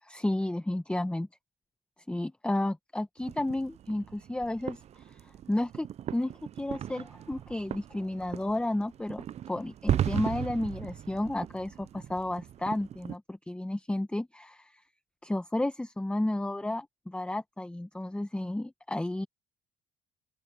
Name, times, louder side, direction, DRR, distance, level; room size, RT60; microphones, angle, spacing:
voice 1, 0.0-1.3 2.1-14.8 15.2-19.3, left 1 dB, 5° left, 1.0 m, -32 dB
sound 1, 3.2-13.2, right 10 dB, 40° right, 0.4 m, -37 dB
open air
cardioid pair, 110°, 17 cm